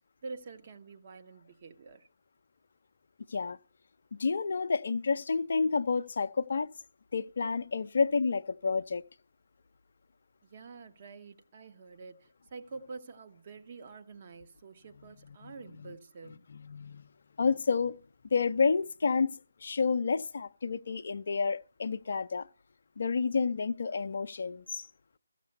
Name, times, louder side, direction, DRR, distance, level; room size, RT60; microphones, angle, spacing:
voice 1, 0.2-2.1 10.4-16.5, right 4 dB, 35° right, 1.0 m, -47 dB
voice 2, 4.1-6.7 7.1-9.0 15.4-15.5 16.5-17.1 17.4-18.0 18.3-22.5 23.0-24.8, left 5 dB, 45° left, 0.5 m, -30 dB
15.0 x 6.6 x 7.9 m
figure-of-eight pair, 150°, 0 cm